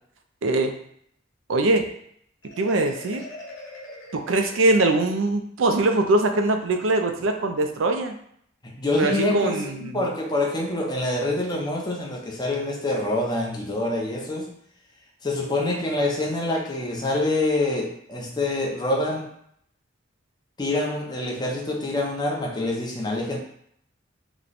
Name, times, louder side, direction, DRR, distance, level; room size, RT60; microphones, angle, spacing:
voice 1, 0.4-0.7 1.5-1.9 2.6-3.2 4.1-8.2 9.0-10.0, right 2 dB, 80° right, 5 dB, 0.5 m, -22 dB
Marimba xylophone, 2.4-5.2, left 2 dB, 80° left, 1.1 m, -42 dB
voice 2, 8.6-14.5 15.2-19.3 20.6-23.4, left 2 dB, 20° left, -2 dB, 0.7 m, -26 dB
3.0 x 2.2 x 3.9 m, 0.68 s
head